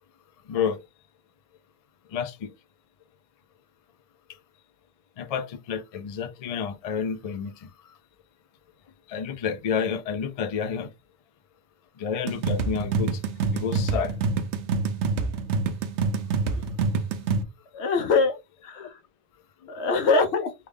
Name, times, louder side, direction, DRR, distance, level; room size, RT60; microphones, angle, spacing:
voice 1, 0.5-0.8 2.1-2.5 5.2-7.7 9.1-10.9 12.0-13.2 13.5-14.2 18.8-18.9 19.6-19.7, left 7 dB, 55° left, 0.4 m, -30 dB
sound 1, 12.3-17.4, right 4 dB, 85° right, 0.9 m, -26 dB
voice 2, 17.7-19.0 19.7-20.5, left 4 dB, 75° left, 1.0 m, -23 dB
3.3 x 2.3 x 3.5 m
omnidirectional pair, 1.1 m